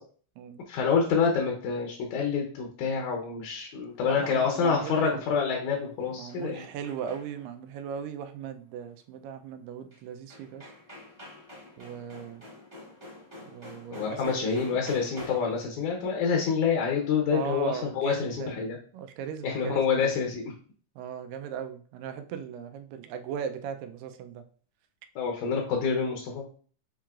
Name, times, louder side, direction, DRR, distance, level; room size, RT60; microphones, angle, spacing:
voice 1, 0.7-6.6 13.9-18.8 19.4-20.5 25.2-26.4, left 6 dB, 75° left, 1 dB, 2.0 m, -27 dB
voice 2, 4.1-5.2 6.1-10.7 11.8-12.4 13.4-14.8 17.3-20.1 21.0-24.4, right 8 dB, 85° right, 7 dB, 2.2 m, -38 dB
sound 1, 5.8-7.6 9.9-10.0 10.3-15.7, left 1 dB, 20° right, 0.8 m, -47 dB
7.4 x 3.0 x 2.4 m, 0.43 s
omnidirectional pair, 3.8 m